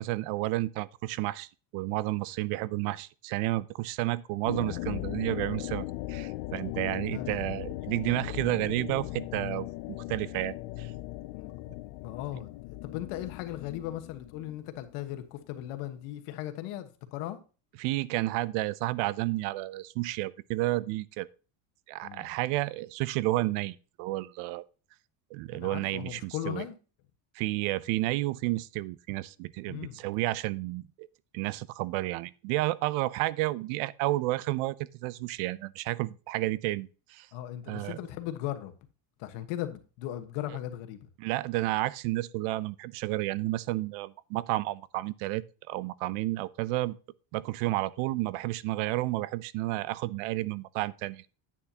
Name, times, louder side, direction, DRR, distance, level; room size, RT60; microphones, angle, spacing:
voice 1, 0.0-9.7 10.1-10.9 17.8-21.3 21.9-24.6 25.3-26.7 27.3-31.1 31.3-37.3 37.7-38.0 41.2-47.0 47.3-51.3, right 18 dB, 80° right, 0.7 m, -31 dB
sound 1, 4.5-15.7, left 17 dB, 70° left, 0.6 m, -38 dB
voice 2, 7.1-7.4 11.3-11.5 11.9-17.4 22.0-22.3 25.5-26.8 29.7-30.0 37.3-38.7 39.2-41.1, left 13 dB, 85° left, 1.4 m, -38 dB
10.0 x 8.5 x 2.8 m
cardioid pair, 175°, 49 cm